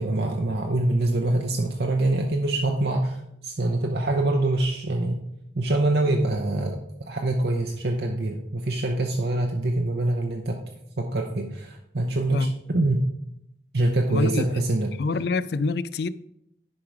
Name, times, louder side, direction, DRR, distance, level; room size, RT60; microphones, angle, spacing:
voice 1, 0.0-5.2 5.5-10.6 11.0-12.5 12.7-13.0 13.7-14.9, right 2 dB, 60° right, 0.9 m, -25 dB
voice 2, 14.1-14.7 15.0-16.1, left 4 dB, 60° left, 0.4 m, -26 dB
10.5 x 4.8 x 4.8 m
head